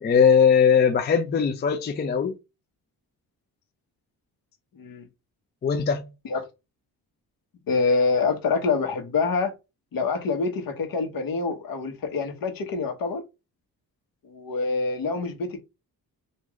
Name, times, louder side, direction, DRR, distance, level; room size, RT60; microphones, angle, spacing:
voice 1, 0.0-2.4 5.6-6.1, left 6 dB, 30° left, 0.4 m, -20 dB
voice 2, 7.7-9.5 9.9-13.2 14.2-15.6, left 4 dB, 65° left, 1.1 m, -26 dB
3.1 x 2.5 x 3.6 m
wide cardioid pair, 145°, 37 cm